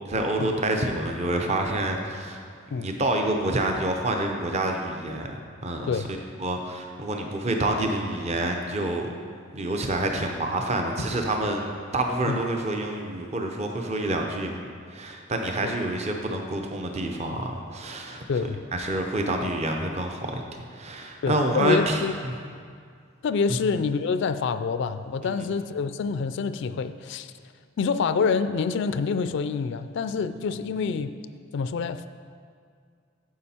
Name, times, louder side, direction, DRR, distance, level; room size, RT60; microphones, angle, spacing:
voice 1, 0.0-2.4 2.7-5.3 5.6-6.0 6.4-9.1 9.5-18.2 18.7-22.3 25.4-25.5, right 1 dB, 35° right, 3 dB, 0.7 m, -28 dB
voice 2, 18.3-18.6 21.2-22.1 23.2-27.3 27.8-31.2 31.5-32.1, left 5 dB, 65° left, 11 dB, 0.3 m, -27 dB
9.6 x 7.3 x 4.3 m, 2.2 s
head